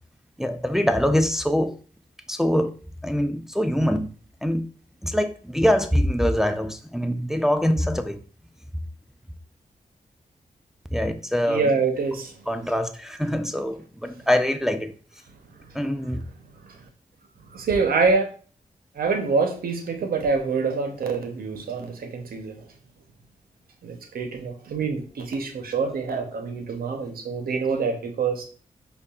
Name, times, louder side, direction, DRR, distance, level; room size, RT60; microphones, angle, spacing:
voice 1, 0.4-1.8 2.3-2.7 3.0-4.1 4.4-4.7 5.0-8.2 10.9-11.6 12.5-14.9 15.7-16.2, equal, 5° right, 0.4 m, -23 dB
voice 2, 11.5-12.5 15.6-15.7 16.5-16.8 17.5-18.3 18.9-22.6 23.8-28.4, right 4 dB, 80° right, 0.7 m, -26 dB
5.2 x 2.3 x 2.3 m
cardioid pair, 50°, 15 cm